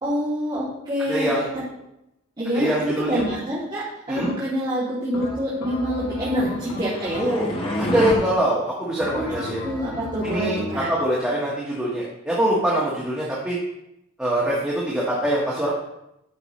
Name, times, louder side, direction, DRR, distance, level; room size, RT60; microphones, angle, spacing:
voice 1, 0.0-1.3 2.4-7.2 9.1-9.2 9.6-10.9, equal, 20° right, -11 dB, 2.5 m, -26 dB
voice 2, 1.1-1.5 2.5-3.2 4.1-4.3 7.2-7.5 7.8-9.7 10.2-10.6 10.9-13.6 14.2-15.7, right 1 dB, 5° right, -7 dB, 1.4 m, -23 dB
sound 1, 3.2-3.7 4.2-4.7 5.1-7.6 8.0-8.6 9.0-10.9, left 1 dB, 85° left, 1.1 m, -34 dB
sound 2, 6.2-8.1, left 1 dB, 25° left, 1.1 m, -28 dB
12.5 x 5.8 x 3.1 m, 0.85 s
head